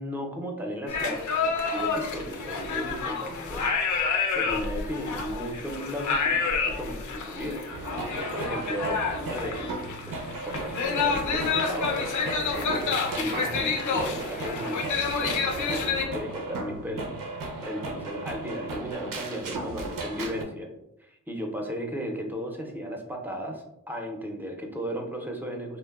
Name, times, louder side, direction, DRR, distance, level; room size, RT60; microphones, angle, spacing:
voice 1, 0.0-3.7 4.0-7.7 8.1-20.7 21.0-25.8, equal, 5° right, 1 dB, 0.5 m, -35 dB
sound 1, 0.9-16.0, left 5 dB, 65° left, 0.5 m, -29 dB
sound 2, 7.7-20.4, right 2 dB, 75° right, 0.5 m, -36 dB
3.0 x 2.0 x 2.3 m, 0.85 s
cardioid pair, 70°, 33 cm